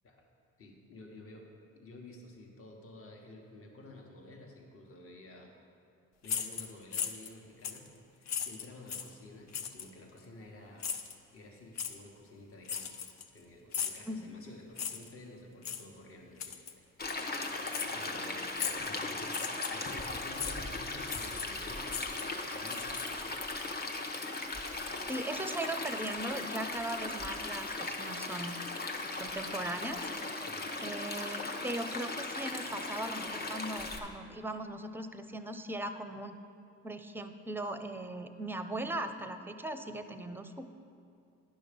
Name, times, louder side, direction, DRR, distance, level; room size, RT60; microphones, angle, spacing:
voice 1, 0.6-5.5 6.2-7.9 8.2-10.9 11.3-12.9 13.3-17.5 17.9-18.5 18.8-19.4 19.7-22.0 22.5-23.4 30.4-30.8, left 2 dB, 45° left, 1 dB, 1.4 m, -52 dB
sound 1, 6.2-7.3 7.6-7.9 8.3-9.1 9.5-9.9 10.8-11.1 11.8-11.9 12.7-13.4 13.7-14.0 14.8-15.1 15.6-15.8 16.4-16.7 17.1-17.2 17.7-17.9 18.6-18.9 19.3-19.9 20.4-20.6 21.1-21.6 21.9-23.4, left 7 dB, 65° left, 0.7 m, -37 dB
Stream, 17.0-34.0, left 2 dB, 30° left, 1.0 m, -38 dB
voice 2, 25.1-28.6 29.0-30.1 30.8-36.4 36.8-40.7, right 1 dB, 5° right, 8 dB, 0.5 m, -39 dB
10.0 x 6.2 x 5.2 m, 2.6 s
cardioid pair, 90°, 30 cm